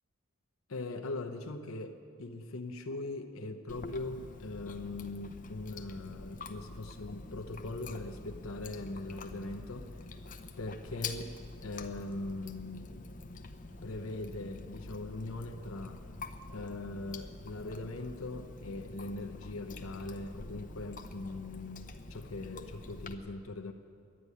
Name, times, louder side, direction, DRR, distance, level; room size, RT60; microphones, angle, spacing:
voice 1, 0.7-9.9 10.6-11.3 11.6-13.1 13.8-16.0 16.5-23.7, left 2 dB, 75° left, 5 dB, 0.8 m, -41 dB
Chewing mastication, 3.7-23.1, left 3 dB, 40° left, 0.8 m, -46 dB
12.5 x 9.6 x 9.8 m, 2.4 s
head